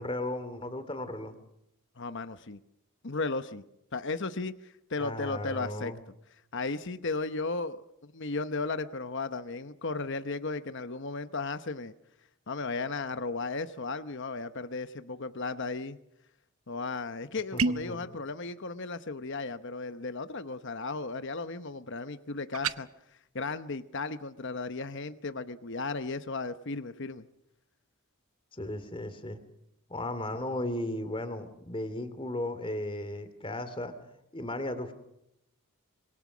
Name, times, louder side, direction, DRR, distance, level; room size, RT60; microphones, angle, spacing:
voice 1, 0.0-1.4 5.0-6.0 17.5-18.2 28.5-29.4 29.9-33.9 34.3-34.9, left 1 dB, 25° left, 10 dB, 2.6 m, -35 dB
voice 2, 2.0-2.6 3.0-3.6 3.9-5.9 6.5-11.9 12.5-16.0 16.7-22.9 23.3-27.3, left 3 dB, 55° left, 11 dB, 1.0 m, -35 dB
sound 1, 17.6-18.0 22.5-22.8, right 4 dB, 70° right, 0.9 m, -28 dB
26.5 x 22.5 x 6.2 m, 0.82 s
head